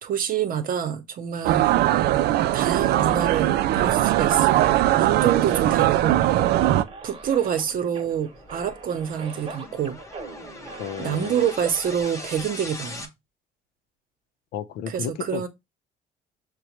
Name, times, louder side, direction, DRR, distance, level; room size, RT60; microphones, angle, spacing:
voice 1, 0.0-1.8 2.5-4.7 5.0-6.2 7.0-10.0 11.0-13.1 14.9-15.5, right 8 dB, 55° right, 0.8 m, -27 dB
sound 1, 1.4-6.8, right 14 dB, 70° right, 0.4 m, -20 dB
sound 2, 5.9-12.3, right 4 dB, 35° right, 1.0 m, -41 dB
sound 3, 6.9-13.1, left 2 dB, 20° left, 0.7 m, -42 dB
voice 2, 10.8-11.5 14.5-15.5, left 9 dB, 70° left, 0.6 m, -33 dB
6.1 x 2.2 x 3.0 m
cardioid pair, 110°, 17 cm